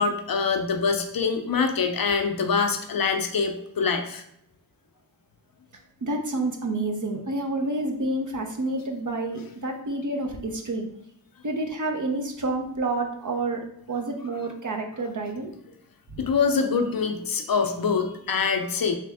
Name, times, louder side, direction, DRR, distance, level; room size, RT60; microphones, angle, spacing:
voice 1, 0.0-4.2 16.2-19.0, left 5 dB, 60° left, 5 dB, 0.6 m, -24 dB
voice 2, 6.0-10.9 11.4-13.6 13.9-15.5, right 2 dB, 50° right, 3 dB, 0.8 m, -29 dB
3.3 x 3.3 x 3.5 m, 0.75 s
cardioid pair, 40°, 39 cm